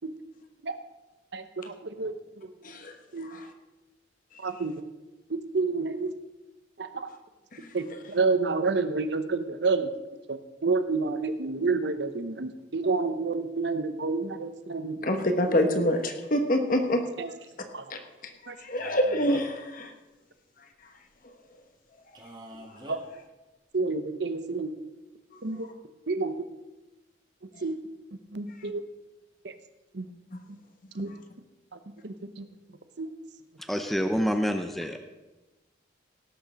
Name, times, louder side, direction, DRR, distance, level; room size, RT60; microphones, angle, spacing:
voice 1, 1.3-2.5 3.1-3.3 4.4-4.7 5.3-6.1 6.8-7.1 7.7-9.9 10.3-15.0 15.5-15.6 17.2-17.3 17.7-17.8 18.5-18.6 18.8-18.9 22.9-23.0 23.7-24.7 25.4-25.7 26.1-26.4 27.6-27.8 28.3-28.8 29.4-29.5 29.9-30.1 30.9-31.1 31.7-32.4 33.0-33.1, right 4 dB, 60° right, 10 dB, 0.8 m, -29 dB
voice 2, 2.6-3.0 3.2-3.5 7.5-7.7 15.0-17.0 17.9-18.0 18.4-19.9 30.3-30.4, equal, 45° left, 6 dB, 1.3 m, -26 dB
Male speech man speaking, 18.8-19.7 22.1-23.0, right 1 dB, 25° right, 1.7 m, -44 dB
voice 3, 33.7-35.0, equal, ahead, 6 dB, 0.6 m, -27 dB
17.5 x 6.6 x 6.2 m, 1.1 s
head